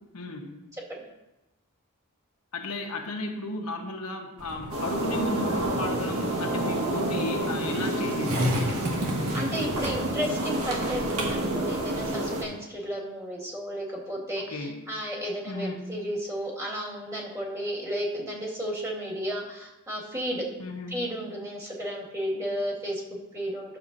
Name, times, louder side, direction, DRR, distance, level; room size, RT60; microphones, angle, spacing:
voice 1, 0.1-0.6 2.5-8.7 14.4-14.9 15.5-15.8 20.6-21.0, left 2 dB, 85° left, 3 dB, 1.1 m, -34 dB
voice 2, 0.7-1.0 9.3-20.5 20.9-23.8, equal, 15° right, -5 dB, 1.8 m, -33 dB
Skateboard, 4.4-12.4, equal, 85° right, 1.8 m, -34 dB
sound 1, 4.7-12.4, right 1 dB, 70° right, 1.5 m, -29 dB
11.0 x 6.9 x 2.6 m, 0.98 s
head